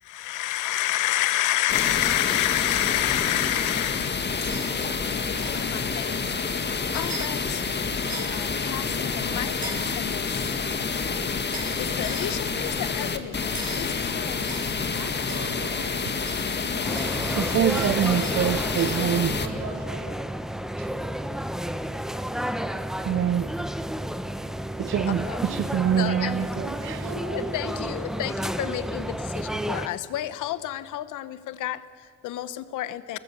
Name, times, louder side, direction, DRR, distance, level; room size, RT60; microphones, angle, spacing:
voice 1, 0.0-5.2 5.5-6.3 6.6-7.7 8.1-9.6 9.9-10.5 11.8-14.4 16.8-17.3 25.2-25.4 26.0-26.5 26.8-26.9 27.3-33.2, left 14 dB, 85° left, 1.1 m, -30 dB
sound 1, 1.7-19.5, left 5 dB, 35° left, 1.8 m, -28 dB
sound 2, 4.4-4.7 5.4-5.6 6.9-7.3 8.1-8.4 9.6-9.9 11.5-11.8 12.0-12.3 13.5-13.9 14.5-15.9 16.3-19.0, right 2 dB, 25° right, 7.4 m, -39 dB
voice 2, 14.9-16.2 19.3-20.3 25.1-25.5 26.3-28.9, right 2 dB, 75° right, 5.5 m, -39 dB
sound 3, 16.8-29.9, equal, ahead, 0.9 m, -31 dB
voice 3, 17.3-19.4 20.8-20.9 23.0-23.5 24.8-27.0, right 10 dB, 45° right, 0.5 m, -25 dB
24.0 x 21.0 x 6.8 m
cardioid pair, 90°, 30 cm